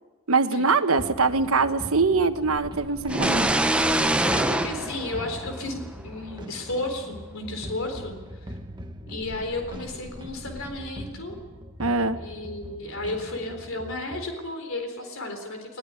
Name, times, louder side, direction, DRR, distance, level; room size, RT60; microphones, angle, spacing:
voice 1, 0.3-3.5 11.8-12.2, right 4 dB, 75° right, 9 dB, 1.3 m, -23 dB
sound 1, 1.0-14.3, equal, 20° right, 1.4 m, -41 dB
sound 2, 3.1-5.9, right 1 dB, 5° right, 0.8 m, -24 dB
voice 2, 4.3-8.2 8.5-8.6 9.1-11.4 12.2-15.8, left 2 dB, 65° left, 5 dB, 4.0 m, -33 dB
21.0 x 19.5 x 9.9 m, 1.3 s
head